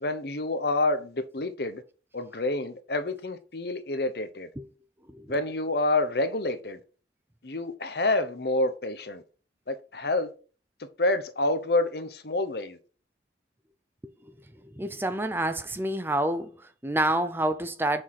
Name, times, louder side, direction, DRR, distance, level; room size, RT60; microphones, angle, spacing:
voice 1, 0.0-1.8 2.1-4.5 5.3-6.8 7.4-9.2 9.7-10.3 11.0-12.8, left 2 dB, 60° left, 0.9 m, -28 dB
voice 2, 14.6-18.0, right 1 dB, 10° right, 0.5 m, -28 dB
6.3 x 4.8 x 5.7 m
head